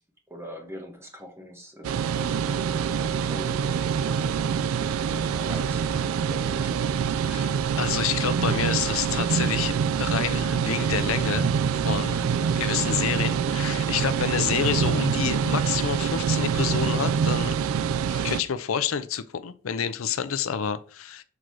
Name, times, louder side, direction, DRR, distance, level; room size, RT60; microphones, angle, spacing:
voice 1, 0.3-7.0 12.4-12.7, equal, 10° right, 1.2 m, -42 dB
sound 1, 1.8-18.4, right 7 dB, 90° right, 0.4 m, -25 dB
voice 2, 7.3-11.5 11.8-12.3 12.6-17.6 18.1-21.2, left 8 dB, 80° left, 0.5 m, -28 dB
6.1 x 3.8 x 4.7 m
head